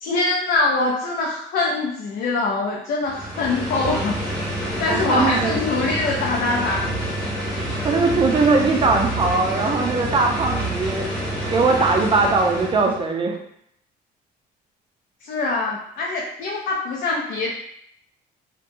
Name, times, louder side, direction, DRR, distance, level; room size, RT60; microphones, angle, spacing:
voice 1, 0.0-4.2 4.8-7.0 15.2-17.5, left 3 dB, 65° left, -2 dB, 0.5 m, -23 dB
sound 1, 3.0-13.0, right 1 dB, 5° left, 1.0 m, -27 dB
voice 2, 4.9-5.6 7.8-11.1 11.5-13.4, right 3 dB, 30° right, 2 dB, 0.5 m, -20 dB
2.7 x 2.2 x 2.6 m, 0.72 s
cardioid pair, 110°, 17 cm